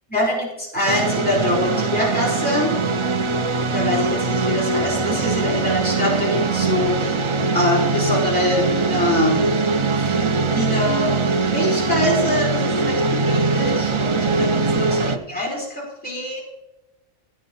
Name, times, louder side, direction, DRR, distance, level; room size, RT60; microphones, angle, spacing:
voice 1, 0.1-2.7 3.6-9.6 10.0-11.1 11.5-16.4, left 1 dB, 5° left, -5 dB, 4.5 m, -24 dB
sound 1, 0.9-15.2, right 3 dB, 50° right, 0.3 m, -21 dB
15.5 x 9.3 x 3.1 m, 0.99 s
omnidirectional pair, 1.4 m